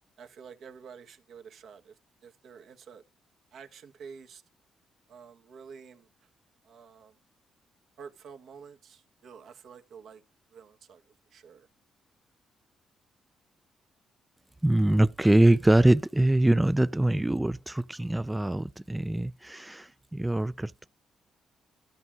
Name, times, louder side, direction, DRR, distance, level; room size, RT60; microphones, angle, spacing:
voice 1, 0.2-3.0 3.5-4.4 5.1-6.3 6.6-7.2 8.0-10.2 10.5-11.7, right 6 dB, 70° right, 1.6 m, -49 dB
voice 2, 14.6-20.9, right 1 dB, 10° right, 0.5 m, -24 dB
12.5 x 6.2 x 3.8 m
cardioid pair, 85°, 0 cm